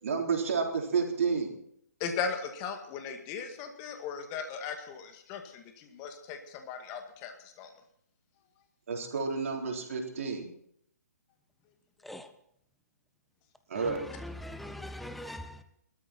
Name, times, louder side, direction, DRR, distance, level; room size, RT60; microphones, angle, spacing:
voice 1, 0.0-1.5 8.9-10.5 13.7-14.1, right 5 dB, 55° right, 1 dB, 3.7 m, -30 dB
voice 2, 2.0-7.3 7.6-7.7, left 6 dB, 25° left, 5 dB, 2.1 m, -37 dB
voice 3, 13.7-15.6, left 1 dB, ahead, 9 dB, 0.8 m, -42 dB
19.5 x 13.0 x 4.3 m, 0.69 s
figure-of-eight pair, 135°, 9 cm